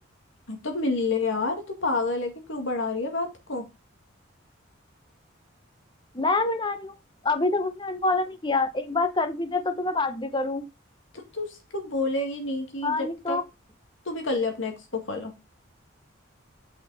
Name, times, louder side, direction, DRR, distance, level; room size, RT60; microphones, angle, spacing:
voice 1, 0.5-3.6 11.1-13.4 14.1-15.3, left 3 dB, 65° left, 4 dB, 2.1 m, -29 dB
voice 2, 6.1-7.0 7.2-10.6 12.8-13.4, left 3 dB, 20° left, 9 dB, 0.8 m, -26 dB
6.2 x 5.7 x 4.1 m, 0.25 s
head